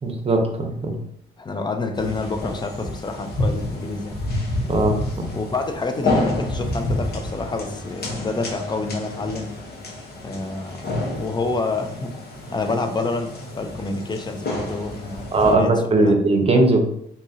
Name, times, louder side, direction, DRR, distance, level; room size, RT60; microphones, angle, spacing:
voice 1, 0.0-1.0 4.7-5.3 15.3-16.9, right 2 dB, 30° right, 3 dB, 0.7 m, -19 dB
voice 2, 1.4-4.2 5.3-9.6 10.2-12.2 12.5-16.2, left 3 dB, 20° left, 7 dB, 0.5 m, -28 dB
sound 1, 1.9-15.5, left 2 dB, 55° left, 0.9 m, -29 dB
3.8 x 2.8 x 2.7 m, 0.72 s
cardioid pair, 90°, 20 cm